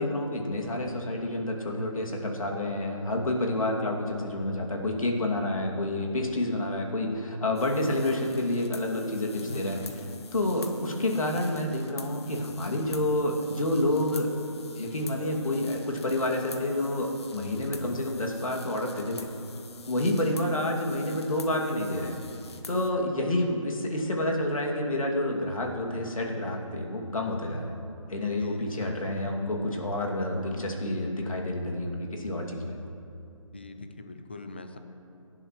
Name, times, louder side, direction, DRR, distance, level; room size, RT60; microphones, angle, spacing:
voice 1, 0.0-9.8 10.3-14.3 14.8-19.3 19.9-22.2 22.7-27.8 28.1-32.8, left 1 dB, 75° left, 0 dB, 2.5 m, -29 dB
sound 1, 7.5-22.9, left 3 dB, 50° left, 1.1 m, -45 dB
voice 2, 9.5-9.9 28.4-29.3 33.5-34.8, left 3 dB, 20° left, 7 dB, 0.5 m, -42 dB
23.0 x 11.0 x 3.2 m, 2.6 s
figure-of-eight pair, 170°, 18 cm